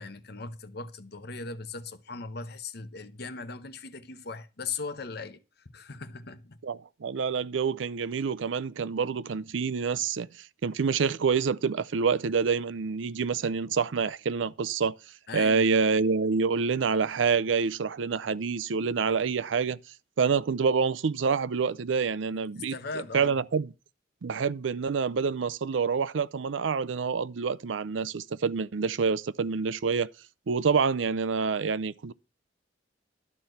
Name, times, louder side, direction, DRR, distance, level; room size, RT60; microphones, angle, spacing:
voice 1, 0.0-6.6 15.3-15.6 22.3-23.4, left 4 dB, 60° left, 0.9 m, -39 dB
voice 2, 6.6-14.9 15.3-19.8 20.2-22.8 23.1-23.7 24.2-30.1 30.5-32.1, right 5 dB, 90° right, 0.5 m, -27 dB
12.5 x 4.3 x 7.8 m
head